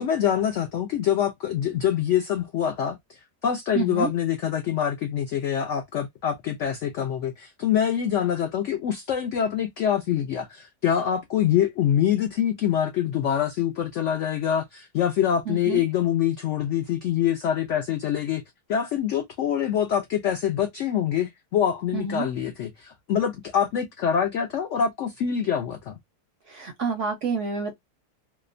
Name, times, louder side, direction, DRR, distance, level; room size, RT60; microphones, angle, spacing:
voice 1, 0.0-18.4 18.7-26.0, left 9 dB, 85° left, 0.6 m, -25 dB
voice 2, 3.7-4.1 15.5-15.8 21.9-22.3 26.5-27.7, right 5 dB, 65° right, 0.8 m, -28 dB
2.8 x 2.1 x 2.4 m
omnidirectional pair, 1.8 m